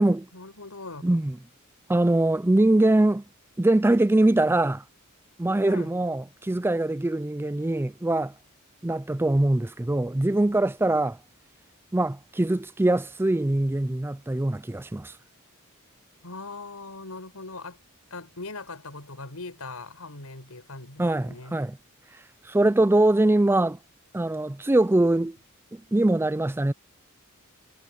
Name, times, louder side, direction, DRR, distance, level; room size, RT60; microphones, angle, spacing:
voice 1, 0.3-1.1 5.7-5.9 16.2-17.8 18.1-21.6, left 3 dB, 90° left, 4.8 m, -40 dB
voice 2, 1.0-1.4 1.9-3.2 3.6-4.8 5.4-8.3 8.8-11.2 11.9-15.1 21.0-21.8 22.4-23.8 24.1-25.4 25.7-26.7, right 1 dB, 10° right, 0.4 m, -23 dB
head